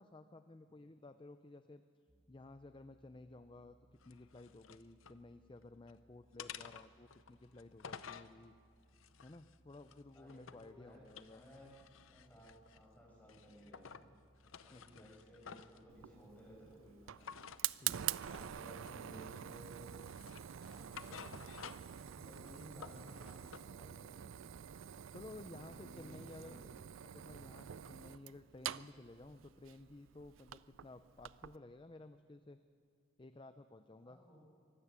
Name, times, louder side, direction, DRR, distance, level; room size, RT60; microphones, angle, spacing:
voice 1, 0.0-1.8 2.3-3.8 4.0-8.5 9.2-11.4 14.7-15.1 17.7-18.3 25.1-26.6 27.0-32.6 33.2-34.2, left 2 dB, 25° left, 10 dB, 0.5 m, -55 dB
voice 2, 0.7-1.0 9.8-9.9 10.1-11.7 12.0-14.0 14.5-17.3 18.1-19.9 20.6-24.6 25.4-26.8 34.0-34.5, equal, 10° left, -2 dB, 5.4 m, -58 dB
sound 1, 2.1-17.7, right 1 dB, 15° right, 1.6 m, -71 dB
sound 2, 4.0-5.2 5.6-6.0 6.4-8.3 8.9-10.7 11.0-12.9 13.3-14.1 14.4-15.8 17.2-17.6 18.3-18.5 18.9-19.6 20.0-22.0 22.3-23.7, left 7 dB, 85° left, 0.6 m, -53 dB
Fire, 15.9-31.6, right 11 dB, 80° right, 0.4 m, -46 dB
23.5 x 13.0 x 8.3 m, 2.3 s
head